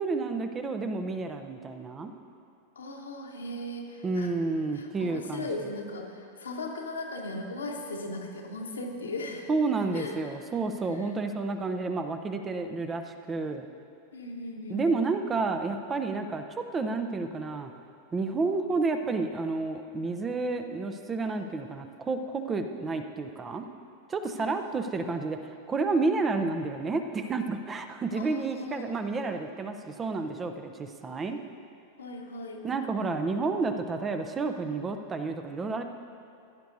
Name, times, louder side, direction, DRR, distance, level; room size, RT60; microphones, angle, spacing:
voice 1, 0.0-2.1 4.0-5.5 9.5-13.7 14.7-16.4 16.7-17.7 18.1-23.7 24.1-31.4 32.6-35.8, right 3 dB, 20° right, 7 dB, 0.6 m, -30 dB
voice 2, 2.7-4.3 4.7-9.5 9.9-10.1 10.9-11.0 14.1-14.9 24.3-24.8 28.1-29.0 32.0-32.6, left 2 dB, 70° left, 1 dB, 1.3 m, -38 dB
16.0 x 10.0 x 2.7 m, 2.6 s
figure-of-eight pair, 90°, 0 cm